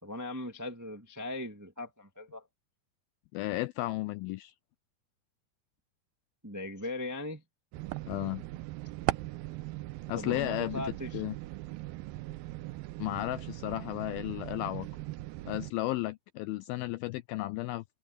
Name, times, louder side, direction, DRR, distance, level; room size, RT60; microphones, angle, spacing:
voice 1, 0.0-2.5 6.4-7.4 10.2-11.2, left 2 dB, 20° right, 0.4 m, -39 dB
voice 2, 3.3-4.5 8.1-8.4 10.1-11.3 13.0-14.9 15.4-17.8, left 17 dB, 85° left, 2.2 m, -34 dB
sound 1, 7.7-15.7, right 18 dB, 85° right, 2.1 m, -39 dB
omnidirectional pair, 4.8 m